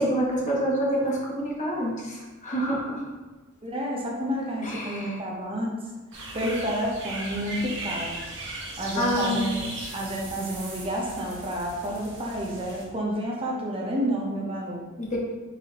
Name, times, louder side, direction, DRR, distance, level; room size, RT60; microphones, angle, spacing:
voice 1, 0.0-3.0 4.6-5.2 8.9-9.5 15.0-15.2, equal, 35° left, -3 dB, 1.0 m, -27 dB
voice 2, 3.6-5.7 6.3-8.2 8.8-9.7 9.9-14.8, equal, 25° right, -1 dB, 0.6 m, -30 dB
sound 1, 6.1-12.8, right 2 dB, 60° right, 1.1 m, -37 dB
4.5 x 4.1 x 2.9 m, 1.3 s
head